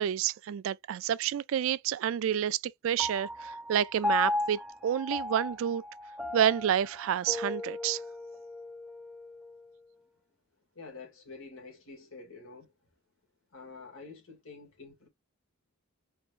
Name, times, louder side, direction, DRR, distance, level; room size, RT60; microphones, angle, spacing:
voice 1, 0.0-5.8 6.3-8.0, right 9 dB, 70° right, 0.3 m, -29 dB
Piano, 3.0-9.7, left 2 dB, ahead, 0.5 m, -36 dB
voice 2, 10.8-12.7 13.5-15.1, left 4 dB, 70° left, 2.0 m, -48 dB
4.6 x 3.0 x 2.5 m
head